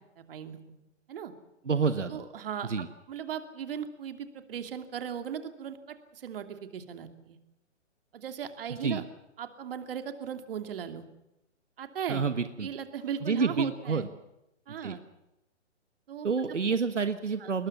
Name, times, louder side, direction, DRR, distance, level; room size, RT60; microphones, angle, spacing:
voice 1, 0.2-0.8 1.1-1.3 2.1-7.4 8.1-9.0 9.4-11.0 11.8-12.3 12.6-14.1 14.7-15.0 16.1-16.6 17.4-17.5, right 8 dB, 50° right, 7 dB, 2.7 m, -38 dB
voice 2, 1.6-2.2 2.7-2.9 8.8-9.0 12.1-12.7 13.2-14.1 14.8-15.0 16.2-17.7, right 5 dB, 85° right, 10 dB, 1.5 m, -28 dB
22.5 x 20.5 x 7.3 m, 0.88 s
figure-of-eight pair, 135°, 35 cm